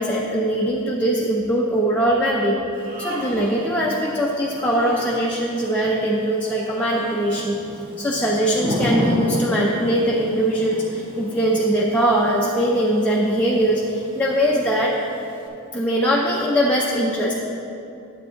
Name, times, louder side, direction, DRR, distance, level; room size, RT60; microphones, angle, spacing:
voice 1, 0.0-7.6 8.0-15.0 15.7-17.4, right 1 dB, 5° left, -4 dB, 0.6 m, -21 dB
Thunder / Rain, 2.7-15.5, left 1 dB, 25° right, 1.2 m, -33 dB
Human voice, 2.7-3.7 4.5-5.3 6.7-7.4, right 1 dB, 45° right, 1.1 m, -35 dB
9.5 x 8.3 x 3.8 m, 2.7 s
head